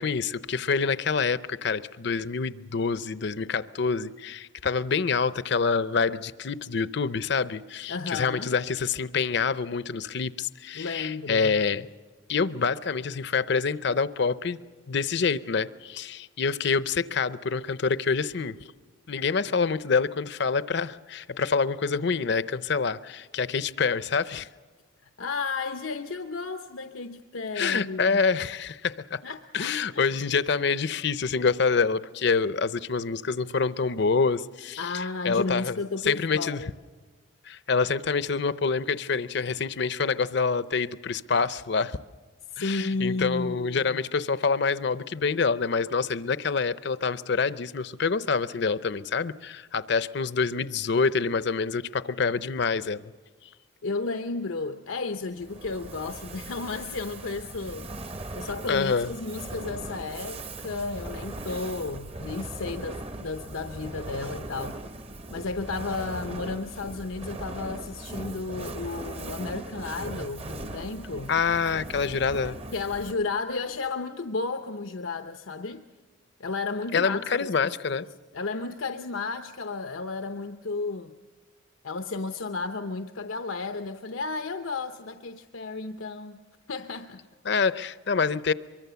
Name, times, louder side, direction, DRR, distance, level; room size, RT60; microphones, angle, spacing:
voice 1, 0.0-11.9 12.3-14.6 14.9-18.6 19.1-24.5 27.6-29.2 29.5-35.8 36.0-36.6 37.5-42.0 42.6-53.0 58.7-59.1 71.3-72.6 76.9-78.1 87.5-88.5, left 5 dB, 60° left, 0.6 m, -26 dB
voice 2, 7.9-8.6 10.7-11.5 25.2-28.2 29.2-30.0 34.8-36.7 42.5-44.0 53.8-57.8 58.3-64.8 65.3-71.3 72.7-75.9 76.4-78.1 78.3-81.1 81.8-86.4 86.7-87.2, left 3 dB, 90° left, 0.8 m, -33 dB
Fire, 55.4-73.3, right 2 dB, 30° right, 0.8 m, -39 dB
24.0 x 23.5 x 6.9 m
head